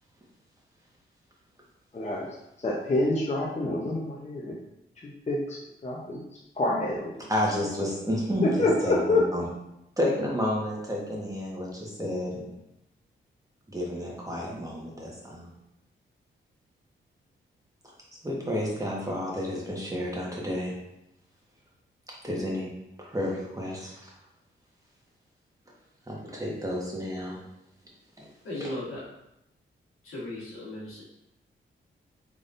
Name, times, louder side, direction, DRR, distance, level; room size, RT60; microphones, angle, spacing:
voice 1, 1.9-2.3 2.6-4.6 5.0-7.3 8.4-9.3, left 2 dB, 30° left, -4 dB, 0.8 m, -27 dB
voice 2, 7.3-9.4 10.0-12.5 13.7-15.5 18.2-20.7 22.2-22.7 23.0-24.0 26.1-27.4 28.2-28.3 28.6-28.7, left 1 dB, 15° right, -4 dB, 1.3 m, -31 dB
voice 3, 28.4-29.0 30.0-31.0, left 1 dB, 90° left, -7 dB, 1.5 m, -36 dB
3.8 x 3.5 x 2.5 m, 0.84 s
cardioid pair, 55°, 21 cm